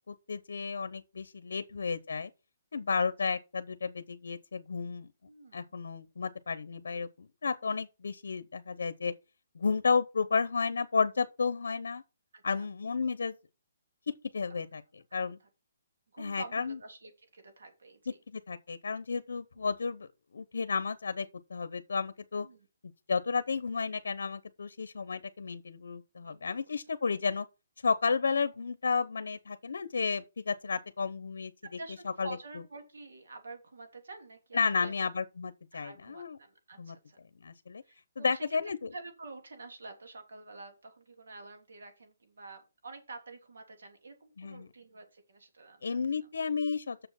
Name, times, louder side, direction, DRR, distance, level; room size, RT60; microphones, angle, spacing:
voice 1, 0.1-2.3 2.7-5.1 5.5-9.1 9.5-12.0 12.4-13.4 14.3-14.8 15.1-15.4 16.2-16.8 18.3-22.5 23.1-27.5 27.8-31.5 32.2-32.3 34.5-36.4 36.8-36.9 37.4-37.8 38.2-38.9 44.4-44.7 45.8-47.1, left 5 dB, 75° left, 0.8 m, -32 dB
voice 2, 5.3-5.7 12.3-12.7 14.5-14.6 15.1-15.5 16.1-18.2 22.4-22.7 26.2-26.6 30.6-30.8 31.6-34.9 35.7-37.2 37.8-38.6 38.9-46.0, right 3 dB, 75° right, 3.2 m, -48 dB
6.9 x 6.7 x 5.8 m
hypercardioid pair, 175°, 0 cm